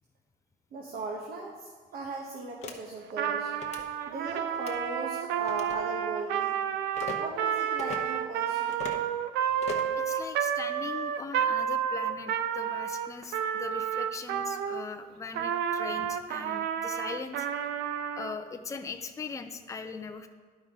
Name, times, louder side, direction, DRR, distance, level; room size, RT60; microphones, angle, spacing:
voice 1, 0.7-3.5 4.1-6.6 7.2-8.9, right 3 dB, 65° right, -1 dB, 1.1 m, -38 dB
sound 1, 2.6-2.8 3.5-3.8 4.5-4.8 5.5-5.8 6.9-7.2 7.8-8.0 8.7-9.0 9.6-10.0, left 5 dB, 40° left, 0.9 m, -39 dB
Trumpet, 3.1-14.9 15.3-18.3, right 9 dB, 80° right, 0.5 m, -30 dB
voice 2, 9.9-17.5 18.1-20.3, left 5 dB, 20° left, 7 dB, 0.5 m, -40 dB
10.5 x 5.4 x 3.7 m, 1.5 s
cardioid pair, 110°, 17 cm